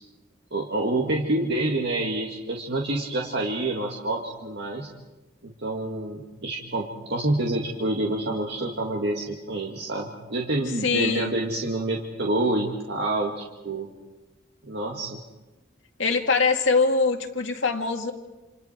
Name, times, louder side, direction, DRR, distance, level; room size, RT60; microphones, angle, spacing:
voice 1, 0.5-4.9 5.4-13.9 14.6-15.2, right 2 dB, 60° right, -1 dB, 2.2 m, -27 dB
voice 2, 10.8-11.3 16.0-18.1, left 4 dB, 70° left, 4 dB, 2.2 m, -23 dB
28.0 x 28.0 x 4.6 m, 1.1 s
head